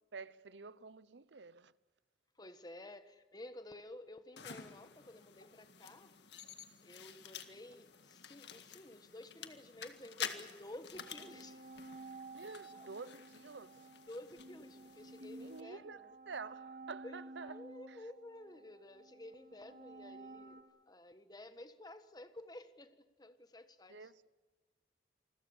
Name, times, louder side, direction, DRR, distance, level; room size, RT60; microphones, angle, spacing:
voice 1, 0.1-1.7 12.3-13.9 15.4-16.0 16.3-17.5 17.9-18.0 23.9-24.3, right 4 dB, 90° right, 0.8 m, -49 dB
voice 2, 2.3-6.5 6.8-11.6 12.7-12.9 14.1-16.2 17.0-24.1, left 1 dB, 20° left, 1.4 m, -52 dB
sound 1, 4.4-15.6, left 7 dB, 75° left, 1.8 m, -50 dB
sound 2, 10.8-20.6, right 2 dB, 55° right, 2.4 m, -53 dB
28.0 x 21.5 x 7.1 m
head